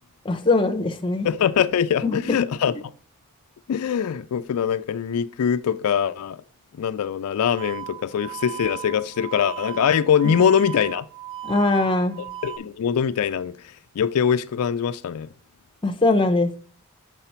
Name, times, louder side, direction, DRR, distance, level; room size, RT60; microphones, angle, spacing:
voice 1, 0.2-1.3 2.0-2.2 11.4-12.2 15.8-16.6, left 2 dB, 20° left, 0.6 m, -21 dB
voice 2, 1.2-2.9 3.7-6.4 6.7-11.1 12.4-15.3, left 8 dB, 75° left, 0.4 m, -23 dB
sound 1, 7.6-12.6, right 12 dB, 50° right, 0.7 m, -36 dB
6.8 x 4.9 x 4.3 m
head